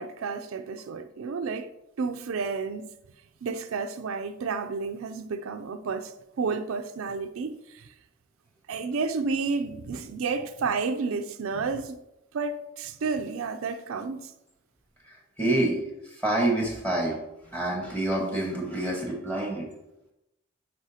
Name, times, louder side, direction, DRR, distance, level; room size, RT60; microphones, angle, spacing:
voice 1, 0.0-1.7 2.0-2.9 3.4-7.9 8.7-12.0 12.3-14.3, right 4 dB, 85° right, 0.4 m, -31 dB
voice 2, 15.1-17.2 17.5-19.7, right 1 dB, 10° left, 1.3 m, -27 dB
9.7 x 4.2 x 2.8 m
head